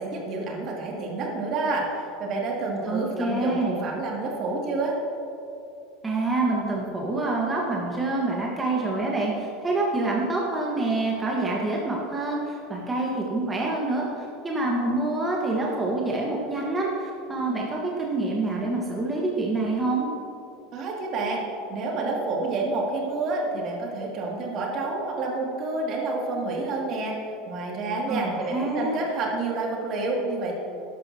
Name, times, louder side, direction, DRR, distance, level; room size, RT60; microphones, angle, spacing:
voice 1, 0.0-5.0 20.7-21.4 21.7-27.2 27.5-30.5, right 3 dB, 50° right, -2 dB, 2.7 m, -29 dB
voice 2, 2.8-3.8 6.0-20.1 28.1-29.0, right 2 dB, 20° right, -3 dB, 1.7 m, -27 dB
12.5 x 11.0 x 3.0 m, 2.7 s
hypercardioid pair, 95°, 0 cm